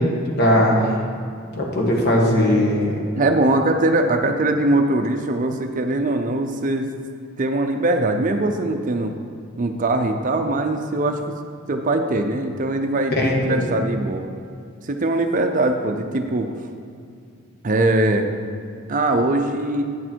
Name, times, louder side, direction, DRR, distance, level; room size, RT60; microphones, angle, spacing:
voice 1, 0.4-0.9 1.5-3.0 13.2-13.6, left 1 dB, 50° left, -1 dB, 1.5 m, -18 dB
voice 2, 3.2-6.9 7.4-9.1 9.6-11.3 11.7-14.3 14.8-16.5 17.6-18.3 18.9-19.8, right 2 dB, 40° right, 5 dB, 0.5 m, -21 dB
9.1 x 6.5 x 4.5 m, 2.3 s
head